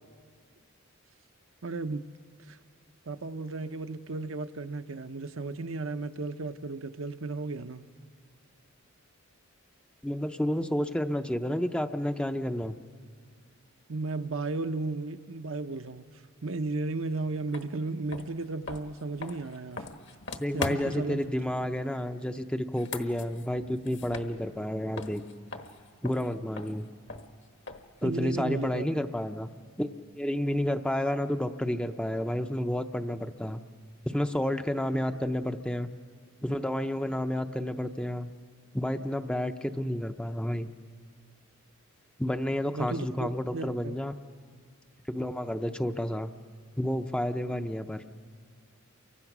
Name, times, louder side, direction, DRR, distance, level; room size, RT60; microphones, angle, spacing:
voice 1, 1.6-2.0 2.5-2.6 3.1-7.9 13.9-16.1 16.4-19.9 20.5-21.2 28.0-28.9 42.7-43.9, right 3 dB, 65° right, 8 dB, 0.7 m, -34 dB
voice 2, 10.0-12.8 20.4-25.2 26.0-26.9 28.0-29.5 29.8-29.9 30.2-33.6 34.1-35.9 36.4-38.3 38.7-40.7 42.2-44.1 45.1-46.3 46.8-48.0, left 1 dB, 5° left, 7 dB, 0.5 m, -30 dB
sound 1, 17.5-17.7 18.1-21.1 22.6-24.7 25.0-28.0, left 3 dB, 55° left, 1.3 m, -40 dB
29.5 x 24.0 x 6.1 m, 2.1 s
head